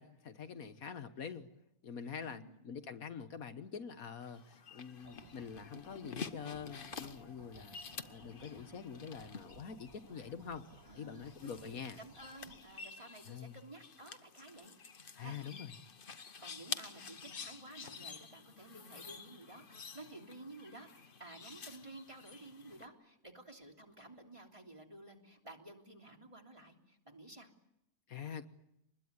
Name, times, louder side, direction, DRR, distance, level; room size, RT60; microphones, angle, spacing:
voice 1, 0.0-1.5 1.8-7.8 8.1-10.6 11.0-12.0 13.3-13.6 15.1-15.7 28.1-28.4, left 7 dB, 70° left, 10 dB, 1.6 m, -45 dB
voice 2, 2.3-2.6 8.4-8.8 10.9-14.8 15.2-15.7 16.4-27.5, right 2 dB, 20° right, 2 dB, 3.3 m, -53 dB
sound 1, 4.2-22.9, left 5 dB, 40° left, 1.2 m, -50 dB
sound 2, 5.0-12.6, right 2 dB, 75° right, 3.6 m, -59 dB
25.5 x 21.0 x 9.6 m, 0.83 s
omnidirectional pair, 1.6 m